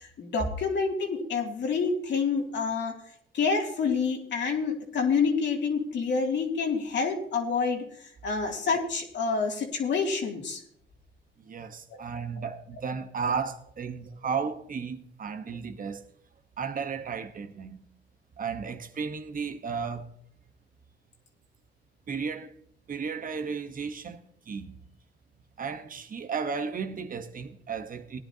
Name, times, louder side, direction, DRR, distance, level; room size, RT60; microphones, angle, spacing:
voice 1, 0.0-3.0 3.3-7.8 8.2-10.6 11.9-12.0 12.4-12.5, left 5 dB, 65° left, 2.7 m, -28 dB
voice 2, 11.4-16.0 16.6-17.9 18.4-20.1 22.1-22.5 22.9-24.2 24.5-24.8 25.6-28.2, right 5 dB, 45° right, 1.1 m, -34 dB
18.5 x 10.5 x 2.8 m
cardioid pair, 90°, 20 cm